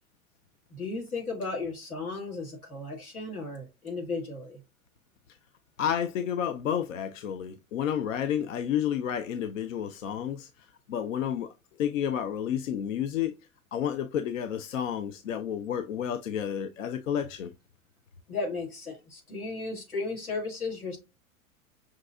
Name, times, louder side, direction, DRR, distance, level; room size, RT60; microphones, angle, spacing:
voice 1, 0.7-4.6 18.3-21.0, left 3 dB, 85° left, 1.6 m, -35 dB
voice 2, 5.8-10.5 10.9-11.5 11.8-13.4 13.7-17.5, left 9 dB, 65° left, 0.5 m, -30 dB
5.8 x 2.7 x 2.2 m
figure-of-eight pair, 90°, 43 cm